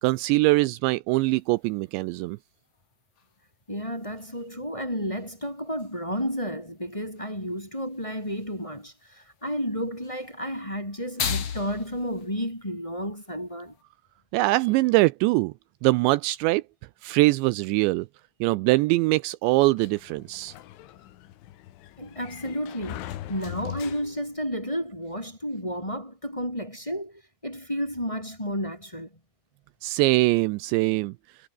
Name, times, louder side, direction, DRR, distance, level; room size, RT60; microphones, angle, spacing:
voice 1, 0.0-2.4 14.3-15.5 15.8-16.6 17.0-18.1 18.4-20.5 29.8-31.1, right 21 dB, 85° right, 2.7 m, -22 dB
sound 1, 1.1-13.8, left 7 dB, 40° left, 2.7 m, -40 dB
voice 2, 3.7-13.8 22.0-29.1, equal, 5° left, 4.0 m, -32 dB
Sliding door, 19.8-24.5, left 13 dB, 85° left, 4.0 m, -41 dB
omnidirectional pair, 5.4 m